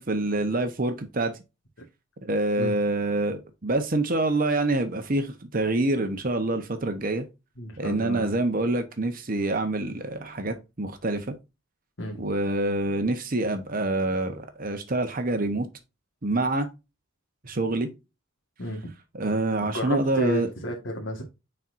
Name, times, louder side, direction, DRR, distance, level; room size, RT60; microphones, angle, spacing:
voice 1, 0.0-1.3 2.2-7.2 7.8-11.3 12.2-15.7 16.2-16.7 17.4-17.9 19.1-20.5, right 2 dB, 45° right, 1.0 m, -26 dB
voice 2, 7.6-8.3 12.0-12.2 18.6-18.9 19.6-21.2, equal, 60° left, 1.6 m, -31 dB
9.8 x 4.4 x 2.6 m
head